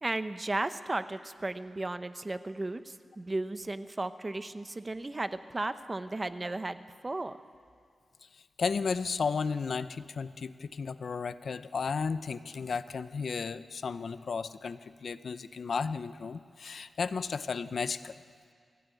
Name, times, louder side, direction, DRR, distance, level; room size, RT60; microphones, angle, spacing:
voice 1, 0.0-7.4, right 2 dB, 25° right, 11 dB, 0.8 m, -35 dB
voice 2, 8.6-18.1, left 5 dB, 60° left, 13 dB, 0.6 m, -34 dB
25.0 x 16.0 x 9.2 m, 2.1 s
wide cardioid pair, 145°, 0 cm